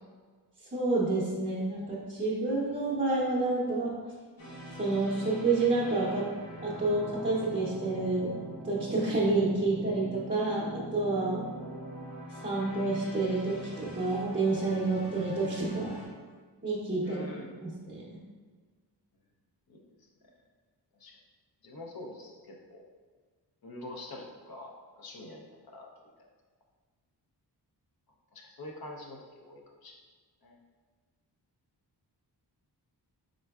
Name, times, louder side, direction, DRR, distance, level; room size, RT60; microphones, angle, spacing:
voice 1, 0.7-3.9 4.8-6.2 6.6-8.3 8.6-11.4 12.4-16.0 16.6-17.2 17.6-18.2, right 2 dB, 20° right, -8 dB, 0.6 m, -29 dB
sound 1, 4.4-16.1, right 1 dB, 75° left, 1.2 m, -43 dB
voice 2, 17.0-17.5 19.7-19.8 21.0-21.2 21.6-22.8 23.6-25.9 28.3-30.0 30.4-30.6, left 2 dB, 60° left, 0 dB, 0.6 m, -45 dB
4.3 x 3.8 x 2.3 m, 1.5 s
wide cardioid pair, 140°, 42 cm